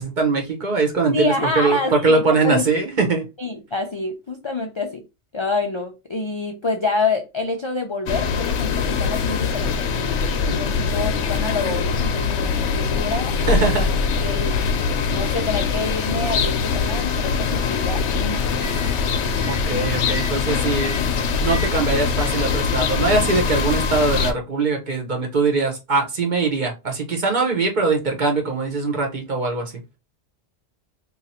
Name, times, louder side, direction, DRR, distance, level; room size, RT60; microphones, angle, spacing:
voice 1, 0.0-3.3 10.4-10.6 13.5-13.9 19.5-21.0 21.4-29.8, right 4 dB, 45° right, 1.0 m, -22 dB
voice 2, 1.1-2.6 3.4-5.0 5.3-10.1 10.5-13.3 14.2-14.6 15.1-18.8, left 3 dB, 45° left, 0.3 m, -27 dB
sound 1, 8.1-24.3, left 5 dB, 90° left, 0.9 m, -22 dB
sound 2, 18.5-23.6, right 1 dB, 80° right, 1.1 m, -38 dB
2.8 x 2.5 x 4.2 m
omnidirectional pair, 1.1 m